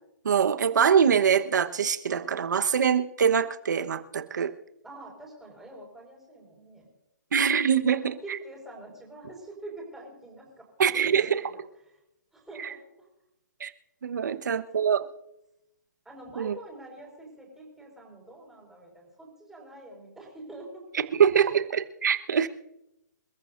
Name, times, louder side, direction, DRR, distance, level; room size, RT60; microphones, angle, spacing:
voice 1, 0.2-4.5 7.3-8.1 10.8-11.4 12.6-12.7 13.6-13.7 14.0-15.0 16.4-16.5 20.9-22.5, right 7 dB, 75° right, 9 dB, 1.2 m, -24 dB
voice 2, 4.8-6.9 8.0-10.7 11.1-11.9 12.3-13.1 14.2-14.8 16.0-21.0, right 2 dB, 5° right, -2 dB, 5.1 m, -46 dB
28.0 x 14.0 x 2.6 m, 0.88 s
hypercardioid pair, 155°, 10 cm